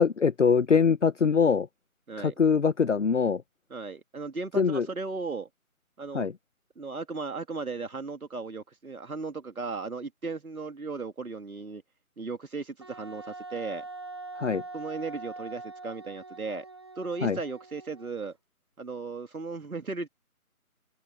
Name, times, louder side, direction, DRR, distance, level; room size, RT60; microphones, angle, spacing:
voice 1, 0.0-1.7 2.2-3.4 4.6-4.9 6.1-6.3 14.3-14.6 17.2-17.4, left 6 dB, 55° left, 0.9 m, -23 dB
voice 2, 3.7-5.5 6.0-6.3 6.8-11.8 12.2-13.9 14.7-16.7 17.0-18.4 18.8-20.1, right 4 dB, 70° right, 2.3 m, -36 dB
Wind instrument woodwind instrument, 12.8-18.3, right 3 dB, 20° right, 1.0 m, -43 dB
figure-of-eight pair, 165°, 44 cm